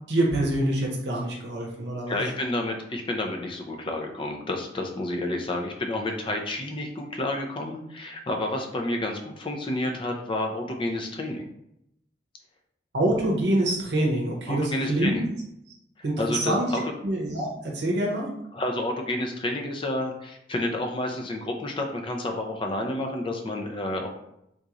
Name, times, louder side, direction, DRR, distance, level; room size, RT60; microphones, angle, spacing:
voice 1, 0.1-2.2 12.9-15.2 16.0-16.7 17.0-18.3, right 1 dB, 70° right, -2 dB, 0.8 m, -25 dB
voice 2, 2.1-11.5 14.5-15.2 16.0-16.8 18.5-24.1, left 1 dB, 30° left, 3 dB, 0.5 m, -30 dB
3.8 x 2.9 x 2.4 m, 0.77 s
head